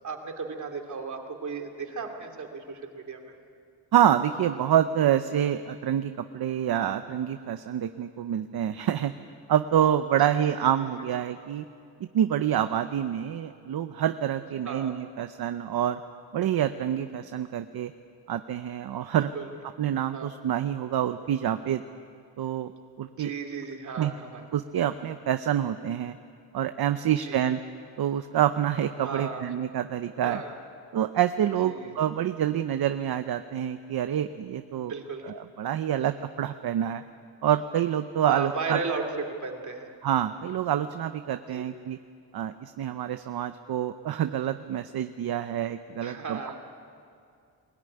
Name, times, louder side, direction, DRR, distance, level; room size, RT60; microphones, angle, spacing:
voice 1, 0.0-3.2 10.4-10.7 14.6-14.9 19.3-19.5 20.1-20.3 23.1-24.4 27.3-27.6 29.0-29.4 30.2-30.6 31.7-32.0 34.8-35.2 38.3-39.9 41.5-41.6 46.0-46.6, right 4 dB, 45° right, 3 dB, 2.7 m, -35 dB
voice 2, 3.9-9.1 9.5-11.6 12.1-16.0 16.3-17.9 18.3-19.3 19.8-21.8 22.4-22.7 23.0-23.3 24.0-24.1 24.5-26.2 26.5-27.6 28.0-30.4 30.9-34.9 35.2-37.0 37.4-38.8 40.0-42.0 42.3-46.5, right 10 dB, 60° right, 9 dB, 0.8 m, -27 dB
22.5 x 17.5 x 9.9 m, 2.4 s
wide cardioid pair, 160°, 43 cm